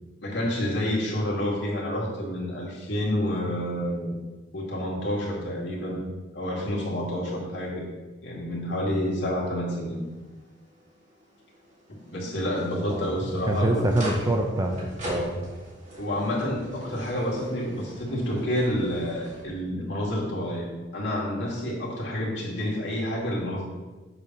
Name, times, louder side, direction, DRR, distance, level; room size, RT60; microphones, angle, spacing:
voice 1, 0.2-4.1 4.5-6.1 6.3-7.9 8.2-10.0 12.1-13.9 16.0-23.6, equal, 70° left, -4 dB, 2.0 m, -29 dB
sound 1, 9.7-19.4, equal, 40° right, 2.2 m, -42 dB
voice 2, 13.5-15.4, right 1 dB, 20° right, 2 dB, 0.6 m, -25 dB
6.9 x 3.5 x 5.9 m, 1.2 s
head